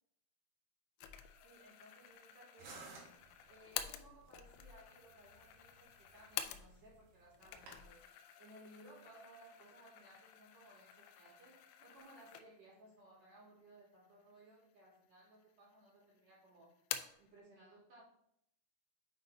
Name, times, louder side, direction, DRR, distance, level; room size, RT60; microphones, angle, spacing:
sound 1, 1.0-7.0 7.3-12.8 13.2-13.3 14.1-14.8 15.1-15.9 16.2-17.3, left 11 dB, 85° left, 3.0 m, -49 dB
voice 1, 1.4-2.8 3.5-8.0 8.4-16.7 17.2-18.0, right 1 dB, 40° right, -9 dB, 3.0 m, -61 dB
sound 2, 2.6-7.8, right 3 dB, 60° right, 3.1 m, -58 dB
8.0 x 5.3 x 2.7 m, 0.76 s
omnidirectional pair, 5.8 m